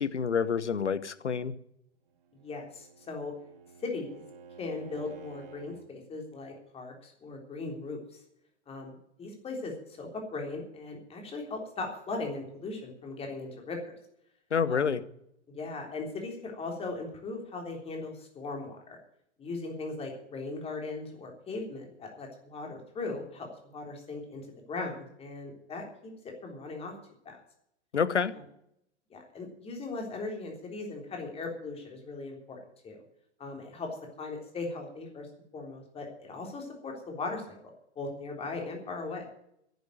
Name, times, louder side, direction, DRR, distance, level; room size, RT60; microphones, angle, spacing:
voice 1, 0.0-1.5 14.5-15.0 27.9-28.3, left 6 dB, 75° left, 16 dB, 1.0 m, -28 dB
Bowed string instrument, 2.2-5.9, right 6 dB, 50° right, 1.9 m, -51 dB
voice 2, 2.3-3.3 3.8-4.2 4.6-8.2 8.7-13.8 14.7-15.0 15.5-19.0 19.4-26.1 26.4-26.9 27.3-27.4 29.1-32.6 32.8-33.0 33.4-33.9 34.2-35.3 35.5-37.6 38.0-39.3, left 3 dB, 15° left, 2 dB, 3.6 m, -38 dB
11.5 x 9.2 x 9.4 m, 0.75 s
figure-of-eight pair, 105°, 35 cm